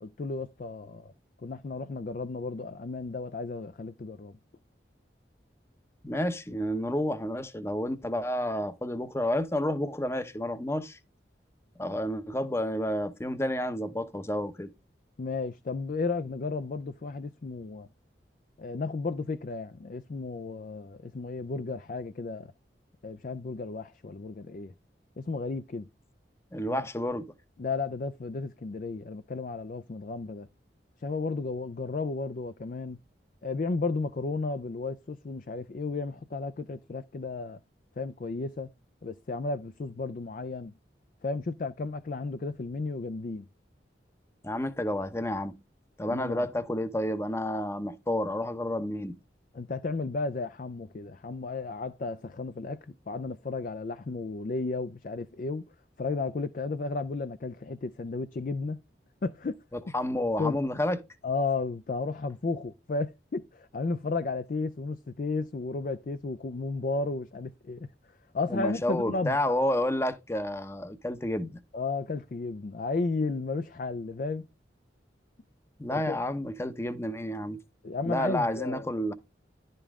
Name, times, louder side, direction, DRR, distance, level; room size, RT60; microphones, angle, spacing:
voice 1, 0.0-1.1 1.4-4.4 15.2-17.9 18.6-22.5 23.0-24.7 25.2-25.9 26.7-26.9 27.6-30.5 31.0-33.0 33.4-37.6 38.0-38.7 39.0-40.7 41.2-43.5 46.1-46.5 49.5-52.8 53.1-55.7 56.0-58.8 59.2-59.6 60.4-60.6 61.2-67.9 68.3-69.4 71.7-74.5 75.9-76.2 77.8-78.9, left 3 dB, 45° left, 0.4 m, -33 dB
voice 2, 6.0-11.0 11.8-14.7 26.5-27.2 44.4-45.5 46.0-49.2 59.9-61.0 68.5-71.6 75.8-77.6 78.0-79.1, left 1 dB, 15° left, 0.7 m, -30 dB
11.0 x 5.3 x 3.6 m
head